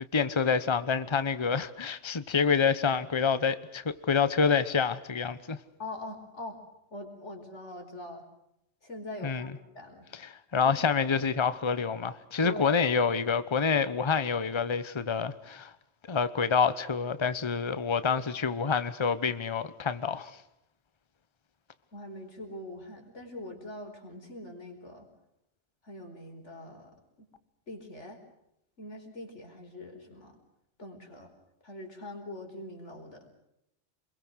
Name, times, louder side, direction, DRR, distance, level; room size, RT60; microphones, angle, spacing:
voice 1, 0.1-5.6 9.2-9.5 10.1-15.7 16.1-20.4, left 6 dB, 25° left, 1.0 m, -27 dB
voice 2, 5.8-6.6 6.9-8.2 8.8-10.1 10.6-10.8 12.4-12.8 21.9-25.1 25.8-27.3 27.7-28.2 28.8-30.3 30.8-31.3 31.6-33.2, left 1 dB, 85° left, 4.9 m, -43 dB
28.0 x 22.0 x 6.4 m
omnidirectional pair, 1.2 m